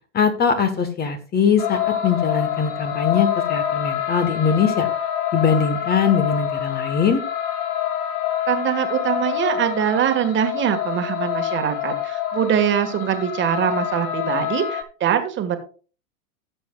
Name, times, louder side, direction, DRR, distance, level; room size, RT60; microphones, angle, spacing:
voice 1, 0.1-4.9 5.3-7.2, left 6 dB, 25° left, 9 dB, 1.1 m, -21 dB
sound 1, 1.6-14.8, left 11 dB, 60° left, 1.5 m, -26 dB
voice 2, 8.5-15.6, right 9 dB, 25° right, 6 dB, 1.4 m, -23 dB
16.5 x 7.0 x 2.3 m, 0.38 s
hypercardioid pair, 115°, 41 cm